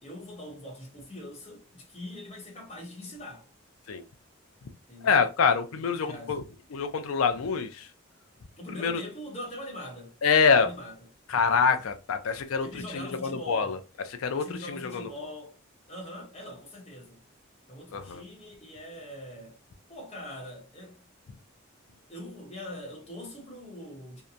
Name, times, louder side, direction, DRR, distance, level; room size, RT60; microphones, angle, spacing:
voice 1, 0.0-3.5 4.9-5.2 6.0-6.4 8.6-10.2 10.5-10.9 12.6-13.8 14.3-15.6 15.9-17.2 17.7-19.6 19.9-21.0 22.1-24.2, left 1 dB, 30° left, 0.9 m, -42 dB
voice 2, 5.0-6.4 6.7-7.9 8.7-9.0 10.2-10.7 11.3-13.8 14.2-15.1 17.9-18.2, left 5 dB, 85° left, 0.4 m, -25 dB
2.8 x 2.1 x 2.4 m
head